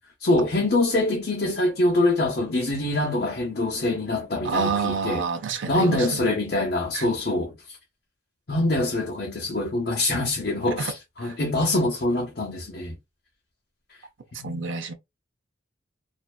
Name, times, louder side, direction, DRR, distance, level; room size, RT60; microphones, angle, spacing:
voice 1, 0.2-5.2 5.7-7.8 8.5-12.9 14.4-14.7, left 2 dB, 50° left, 0.7 m, -24 dB
voice 2, 4.4-6.2 6.9-7.1 10.8-10.9 11.2-11.4 14.3-14.9, right 5 dB, 80° right, 0.6 m, -28 dB
2.6 x 2.2 x 2.3 m
head